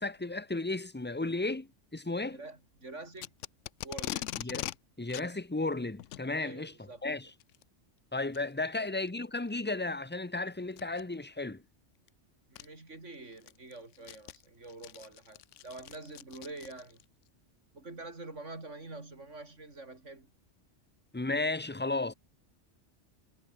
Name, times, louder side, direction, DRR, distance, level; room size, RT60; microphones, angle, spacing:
voice 1, 0.0-2.4 4.4-4.7 5.0-6.7 7.0-7.3 8.1-11.6 21.1-22.1, left 2 dB, 10° left, 0.9 m, -34 dB
voice 2, 2.3-3.3 3.8-4.3 6.4-7.0 8.8-8.9 12.5-17.0 17.7-20.3, right 2 dB, 80° right, 4.5 m, -46 dB
Packing tape duct tape, 3.2-4.8 5.1-5.3 6.0-6.3 7.4-7.6 8.3-8.4 9.1-9.2 10.7-11.0 12.1-12.2 12.6-12.7 13.1-17.1, left 13 dB, 90° left, 0.9 m, -41 dB
omnidirectional pair, 1.2 m